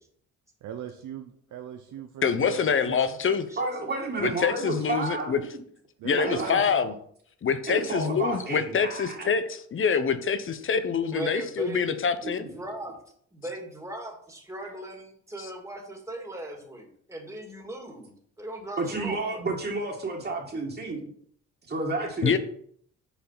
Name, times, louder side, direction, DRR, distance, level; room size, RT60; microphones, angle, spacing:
voice 1, 0.6-3.2 6.0-7.0, right 9 dB, 75° right, 5 dB, 0.8 m, -40 dB
voice 2, 2.2-3.5 4.2-5.4 6.0-6.9 7.4-12.5 22.2-22.4, left 6 dB, 45° left, 11 dB, 0.9 m, -25 dB
voice 3, 3.6-5.5 6.2-6.6 7.7-9.3 12.2-12.5 18.8-21.1 21.7-22.4, right 3 dB, 35° right, -5 dB, 2.1 m, -31 dB
voice 4, 11.1-11.9 12.3-13.0 13.3-19.2, right 1 dB, 10° right, 1 dB, 2.3 m, -38 dB
7.0 x 4.8 x 5.7 m, 0.63 s
cardioid pair, 90°, 30 cm